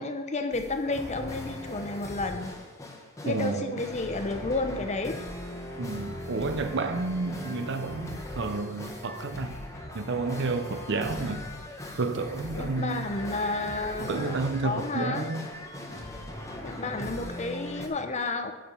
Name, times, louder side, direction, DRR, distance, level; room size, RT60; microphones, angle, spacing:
voice 1, 0.0-2.5 3.2-5.2 11.2-11.4 12.5-15.2 16.6-18.5, left 2 dB, 35° left, 7 dB, 0.8 m, -31 dB
sound 1, 0.5-17.9, left 1 dB, 15° left, 1.1 m, -39 dB
voice 2, 3.2-3.8 5.8-9.6 9.9-11.4 12.0-13.1 14.0-15.5, right 3 dB, 60° right, 8 dB, 0.6 m, -30 dB
9.0 x 6.2 x 5.5 m, 1.2 s
head